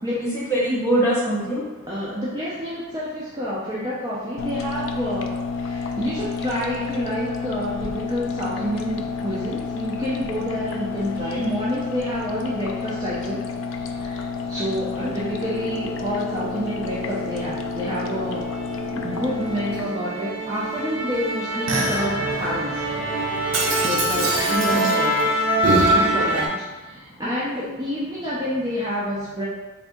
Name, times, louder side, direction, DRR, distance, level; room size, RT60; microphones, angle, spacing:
voice 1, 0.2-1.6 11.3-11.6 15.0-15.2 24.6-24.9, right 1 dB, 10° left, -8 dB, 0.9 m, -24 dB
voice 2, 1.9-13.4 13.7-18.5 18.9-23.3 23.8-25.3 25.7-29.5, equal, 15° right, -8 dB, 0.5 m, -29 dB
sound 1, 4.4-19.8, left 5 dB, 60° left, 0.3 m, -30 dB
Musical instrument, 15.3-26.5, right 1 dB, 60° right, 0.7 m, -25 dB
3.4 x 2.6 x 3.7 m, 1.1 s
head